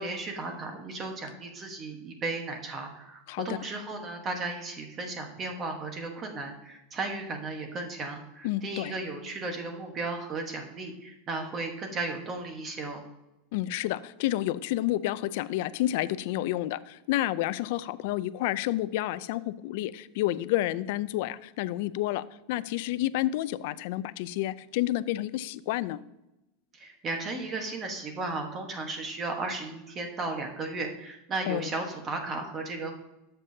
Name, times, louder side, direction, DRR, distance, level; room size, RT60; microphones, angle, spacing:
voice 1, 0.0-13.0 26.7-32.9, right 3 dB, 20° right, 1.2 m, -35 dB
voice 2, 8.4-8.9 13.5-26.0 31.5-31.7, left 15 dB, 55° left, 0.4 m, -30 dB
12.5 x 6.7 x 2.7 m
supercardioid pair, 160°, 0 cm